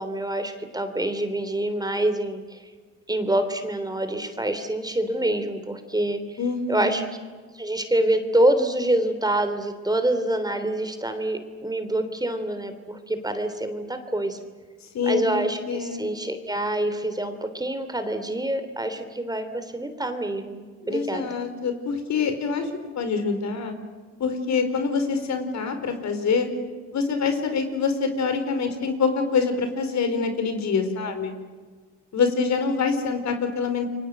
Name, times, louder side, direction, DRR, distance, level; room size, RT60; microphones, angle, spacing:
voice 1, 0.0-2.6 3.1-6.4 6.7-7.1 7.5-14.4 15.0-21.3, right 1 dB, 15° right, 8 dB, 3.3 m, -26 dB
voice 2, 6.4-7.0 14.9-16.1 20.8-22.7 23.0-23.7 24.2-26.5 26.9-31.3 32.1-33.9, left 5 dB, 65° left, 8 dB, 4.7 m, -25 dB
29.5 x 24.0 x 7.9 m, 1.4 s
cardioid pair, 90°, 30 cm